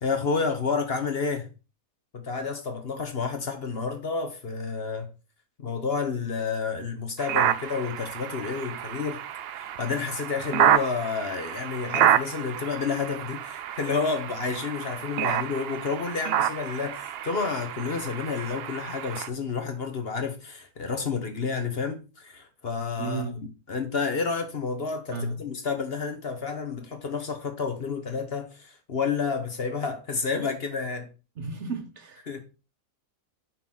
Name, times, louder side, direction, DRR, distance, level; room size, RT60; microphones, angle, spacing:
voice 1, 0.0-1.5 2.1-5.1 5.6-9.2 9.5-31.1 32.3-32.4, left 5 dB, 45° left, 1.3 m, -30 dB
sound 1, 7.2-19.3, right 11 dB, 70° right, 0.5 m, -28 dB
voice 2, 23.0-23.4 25.1-25.4 31.4-32.4, right 4 dB, 55° right, 1.1 m, -34 dB
5.6 x 4.7 x 5.6 m
omnidirectional pair, 1.5 m